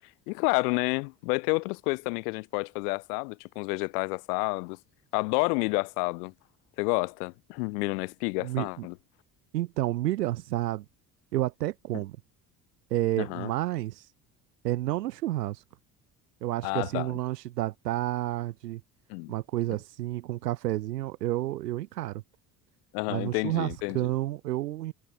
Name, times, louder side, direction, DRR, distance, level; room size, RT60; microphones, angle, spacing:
voice 1, 0.3-4.8 5.1-6.3 6.8-9.0 13.2-13.5 16.6-17.2 19.1-19.3 22.9-24.0, left 30 dB, 65° left, 3.5 m, -29 dB
voice 2, 8.4-8.9 9.5-10.9 11.3-12.2 12.9-14.0 14.6-15.6 16.4-18.8 19.3-22.2 23.1-24.9, right 15 dB, 75° right, 1.8 m, -30 dB
figure-of-eight pair, 60°, 49 cm